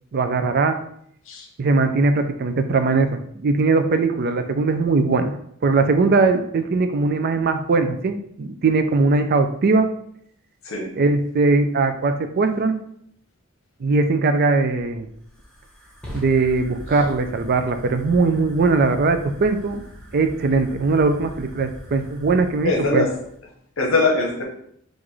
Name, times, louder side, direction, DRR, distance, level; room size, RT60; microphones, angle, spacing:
voice 1, 0.1-0.8 1.6-5.4 5.6-9.9 11.0-12.8 13.8-15.1 16.1-19.8 20.1-23.1, right 3 dB, 45° right, 8 dB, 0.4 m, -20 dB
Fire, 14.6-23.4, equal, 5° left, 1.1 m, -41 dB
voice 2, 22.6-23.2 23.8-24.4, left 3 dB, 65° left, 1 dB, 0.9 m, -21 dB
5.8 x 2.6 x 3.1 m, 0.69 s
head